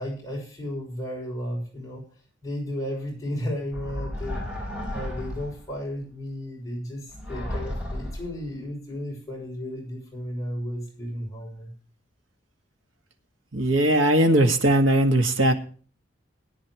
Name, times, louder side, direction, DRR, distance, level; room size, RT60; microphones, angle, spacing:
voice 1, 0.0-2.1 2.4-4.6 4.9-11.7, left 1 dB, 15° left, -3 dB, 6.5 m, -34 dB
sound 1, 3.7-5.7 7.1-8.5, left 1 dB, 5° right, 4.5 m, -33 dB
voice 2, 13.5-15.5, right 1 dB, 85° right, 6 dB, 1.8 m, -19 dB
18.5 x 9.9 x 3.1 m, 0.40 s
head